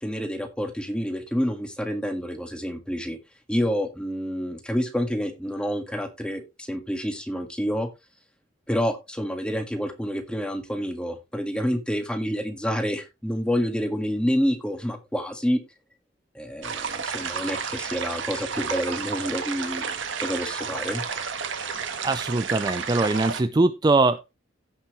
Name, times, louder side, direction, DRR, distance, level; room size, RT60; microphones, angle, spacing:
voice 1, 0.0-3.2 3.5-7.9 8.7-15.6 16.3-21.0, equal, 5° left, 1.7 m, -28 dB
sound 1, 16.6-23.4, right 6 dB, 70° right, 1.5 m, -31 dB
voice 2, 22.0-24.2, right 3 dB, 20° right, 0.4 m, -22 dB
16.5 x 5.7 x 3.0 m
head